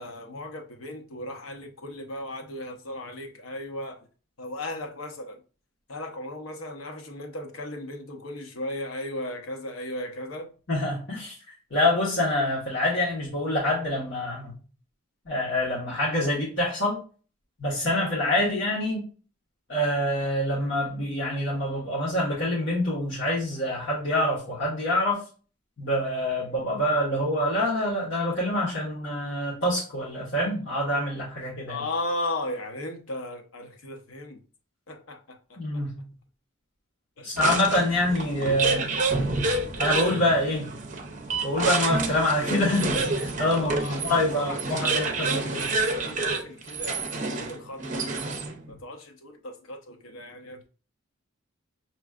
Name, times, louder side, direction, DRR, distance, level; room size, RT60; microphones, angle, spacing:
voice 1, 0.0-4.0 4.4-5.4 5.9-10.5 31.7-34.4 34.9-35.8 37.2-37.4 39.1-39.8 43.6-48.0 48.7-50.7, left 1 dB, 85° left, 0.9 m, -36 dB
voice 2, 10.7-11.4 11.7-14.5 15.3-17.0 17.6-19.1 19.7-25.2 25.8-31.8 35.6-36.0 37.2-38.9 39.8-40.7 41.4-45.7, left 1 dB, 55° left, 1.5 m, -26 dB
sound 1, 37.4-48.7, right 3 dB, 35° right, 0.6 m, -28 dB
6.0 x 3.1 x 2.4 m
head